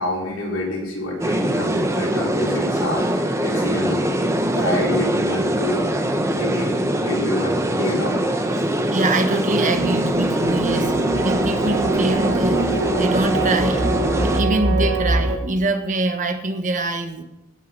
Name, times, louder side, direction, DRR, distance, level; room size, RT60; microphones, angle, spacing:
voice 1, 0.0-4.0 4.6-5.9 6.3-6.8 7.0-8.1, left 1 dB, 85° left, -4 dB, 5.6 m, -27 dB
sound 1, 1.2-14.4, right 1 dB, 15° right, 1.1 m, -22 dB
voice 2, 8.6-13.8 14.2-17.2, right 2 dB, 40° right, 7 dB, 1.2 m, -24 dB
sound 2, 9.7-15.4, right 3 dB, 80° right, 2.1 m, -24 dB
17.0 x 6.7 x 6.6 m, 0.90 s
head